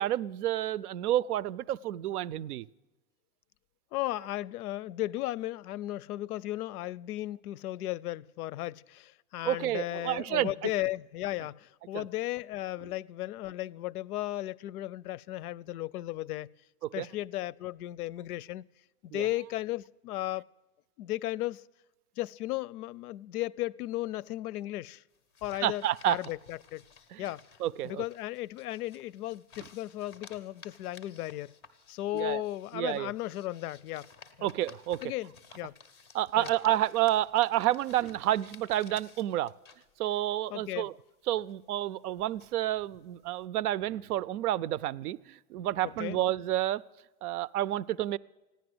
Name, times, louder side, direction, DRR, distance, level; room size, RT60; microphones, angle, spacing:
voice 1, 0.0-2.7 9.4-10.7 11.9-12.1 16.8-17.1 19.1-19.3 25.6-26.2 27.1-27.2 27.6-28.0 32.1-32.4 32.7-33.1 34.4-35.0 36.1-39.5 40.0-40.9 41.3-46.8 47.2-48.2, right 13 dB, 85° right, 0.6 m, -30 dB
voice 2, 3.9-16.5 16.9-18.6 19.0-20.5 21.0-21.6 22.2-25.0 25.4-26.8 27.2-27.4 27.8-31.5 31.9-34.1 34.4-34.5 35.0-35.3 35.6-35.7 36.4-36.5 40.5-40.9 46.0-46.2, left 15 dB, 85° left, 0.6 m, -35 dB
sound 1, 25.1-41.0 41.3-43.4, left 5 dB, 20° left, 0.4 m, -56 dB
15.0 x 10.5 x 7.8 m
supercardioid pair, 180°, 44 cm